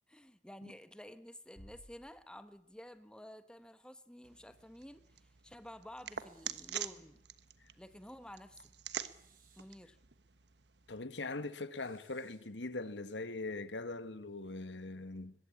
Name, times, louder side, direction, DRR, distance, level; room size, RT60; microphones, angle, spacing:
voice 1, 0.1-7.2 7.8-8.7 9.6-10.0, equal, 5° left, 1.2 m, -52 dB
sound 1, 1.5-3.5, equal, 40° left, 7.9 m, -60 dB
sound 2, 4.2-11.0, right 9 dB, 70° right, 1.3 m, -46 dB
sound 3, 6.1-6.8 8.9-9.8 11.7-12.5, right 7 dB, 50° right, 5.6 m, -69 dB
voice 2, 10.9-15.3, left 2 dB, 80° left, 1.5 m, -41 dB
23.0 x 22.0 x 8.6 m
head